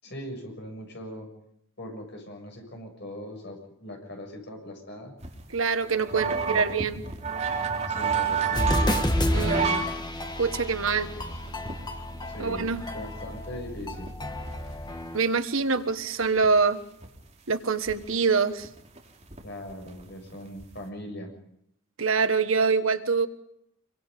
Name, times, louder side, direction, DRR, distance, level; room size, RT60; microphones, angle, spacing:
voice 1, 0.0-1.3 1.8-5.2 6.1-6.7 7.7-9.0 11.0-11.2 12.3-12.7 12.9-14.1 19.4-21.3, equal, 55° left, 2 dB, 7.4 m, -40 dB
sound 1, 5.2-9.9 10.3-10.4 10.9-12.3 12.7-12.8 13.3-13.4 13.6-15.1 15.6-15.7 15.9-16.5 17.0-17.2 17.9-18.0 18.3-19.4 19.7-20.0 20.3-20.8, right 6 dB, 35° right, 3.5 m, -30 dB
voice 2, 5.5-7.0 9.3-9.9 10.4-11.1 12.4-12.8 15.1-16.8 17.5-18.7 22.0-23.3, right 5 dB, 80° right, 10 dB, 1.5 m, -25 dB
sound 2, 8.5-15.2, left 1 dB, 20° left, 1.7 m, -30 dB
26.0 x 24.0 x 5.4 m, 0.75 s
head